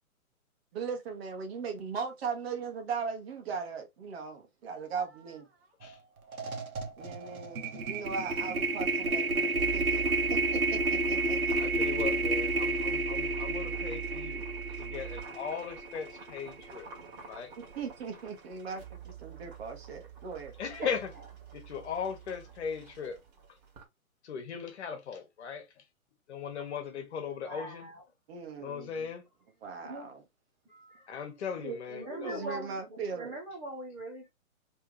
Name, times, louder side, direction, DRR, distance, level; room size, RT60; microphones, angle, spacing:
voice 1, 0.7-5.7 7.0-12.0 17.6-20.5 28.3-29.1 29.6-30.2 31.6-31.8 32.1-33.4, right 5 dB, 45° right, 1.4 m, -39 dB
sound 1, 5.8-6.0 6.3-16.5, right 2 dB, 85° right, 1.3 m, -31 dB
sound 2, 9.6-23.8, right 11 dB, 30° right, 1.7 m, -43 dB
voice 2, 11.5-14.5 14.8-16.9 17.3-17.5 20.6-21.1 21.5-23.2 24.2-25.7 26.3-27.9 28.6-29.2 31.1-32.4, left 6 dB, 50° left, 1.4 m, -38 dB
voice 3, 27.4-28.0 29.8-30.1 30.7-31.1 31.9-34.3, right 1 dB, 10° right, 0.6 m, -41 dB
3.5 x 3.4 x 3.2 m
hypercardioid pair, 150°, 42 cm